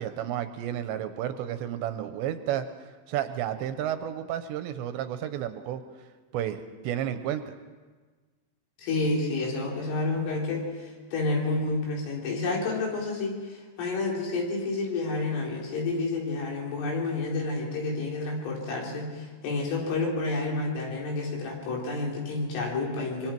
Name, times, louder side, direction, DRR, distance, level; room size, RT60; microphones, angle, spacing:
voice 1, 0.0-2.7 3.1-5.8 6.3-7.5, right 11 dB, 80° right, 9 dB, 2.8 m, -31 dB
voice 2, 8.8-23.3, left 3 dB, 90° left, -2 dB, 6.5 m, -30 dB
24.5 x 24.0 x 4.6 m, 1.4 s
omnidirectional pair, 5.6 m